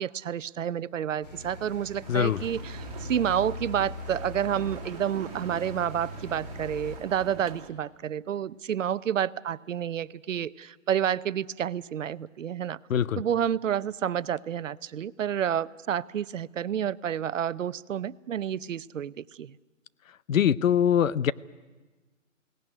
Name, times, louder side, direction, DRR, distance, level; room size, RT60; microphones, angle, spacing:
voice 1, 0.0-12.8 13.2-19.5, right 9 dB, 70° right, 17 dB, 0.7 m, -29 dB
sound 1, 1.2-7.0, left 2 dB, 30° left, 3.0 m, -41 dB
sound 2, 2.0-7.7, right 6 dB, 25° right, 1.7 m, -44 dB
voice 2, 2.1-2.4 12.9-13.2 20.3-21.3, left 9 dB, 80° left, 19 dB, 0.7 m, -23 dB
22.0 x 17.5 x 9.8 m, 1.3 s
hypercardioid pair, 180°, 40 cm